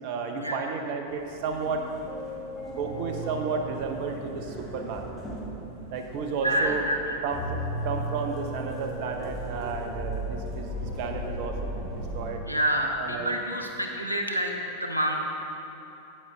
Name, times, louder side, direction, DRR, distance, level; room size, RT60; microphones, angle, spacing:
voice 1, 0.0-1.9 2.7-5.0 5.9-6.8 7.2-7.4 7.8-12.4 13.0-13.3, right 5 dB, 45° right, 4 dB, 0.8 m, -32 dB
sound 1, 1.1-12.3, equal, ahead, 1.8 m, -38 dB
sound 2, 2.8-6.9 7.3-12.8 13.3-13.7, right 2 dB, 30° left, 1.3 m, -39 dB
voice 2, 6.4-7.0 12.5-15.2, right 1 dB, 85° right, 2 dB, 0.8 m, -27 dB
8.7 x 8.4 x 3.4 m, 2.9 s
figure-of-eight pair, 90°, 0 cm